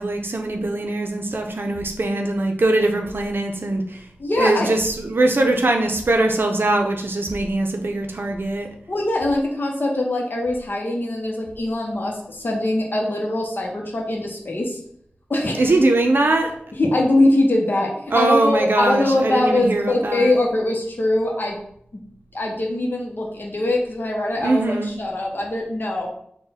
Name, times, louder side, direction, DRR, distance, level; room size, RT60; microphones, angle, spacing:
voice 1, 0.0-4.1 4.4-8.7 15.6-16.5 18.1-20.4 24.4-24.9, right 2 dB, 65° right, 3 dB, 0.5 m, -21 dB
voice 2, 4.2-4.7 8.9-14.8 15.3-15.7 16.7-21.6 21.9-22.0 22.3-26.1, left 1 dB, 60° left, 0 dB, 0.7 m, -22 dB
3.8 x 2.2 x 4.1 m, 0.69 s
wide cardioid pair, 50°, 4 cm